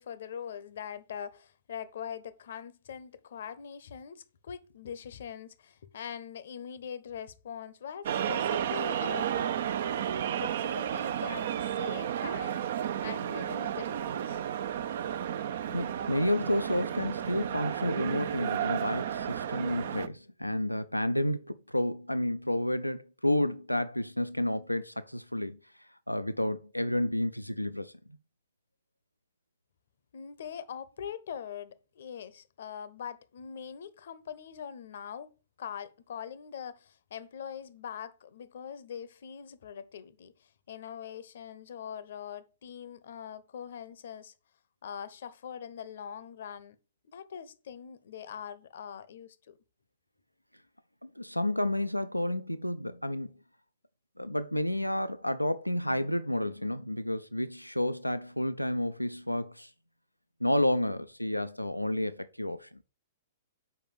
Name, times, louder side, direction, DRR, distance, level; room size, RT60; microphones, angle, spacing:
voice 1, 0.0-9.5 10.4-12.6 13.0-14.4 30.1-35.3 35.6-40.3 40.7-44.3 44.8-46.8 47.0-49.6, left 8 dB, 55° left, 0.8 m, -42 dB
sound 1, 8.1-20.1, right 9 dB, 55° right, 0.6 m, -32 dB
voice 2, 15.7-27.9 51.0-53.3 54.2-59.7 60.4-62.8, left 1 dB, 90° left, 0.5 m, -31 dB
6.7 x 5.1 x 6.7 m
figure-of-eight pair, 110°, 0 cm